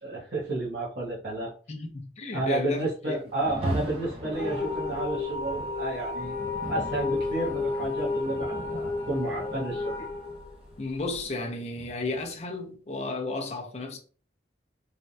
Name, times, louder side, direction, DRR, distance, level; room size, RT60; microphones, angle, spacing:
voice 1, 0.0-1.5 2.3-6.4 6.7-10.0, right 2 dB, 65° right, 1.0 m, -31 dB
voice 2, 1.7-3.2 10.8-14.0, left 2 dB, 35° left, 0.4 m, -33 dB
Rain, 3.3-12.4, right 1 dB, 30° right, 0.6 m, -39 dB
sound 1, 4.3-11.2, left 3 dB, 60° left, 0.9 m, -32 dB
3.2 x 2.1 x 2.6 m
head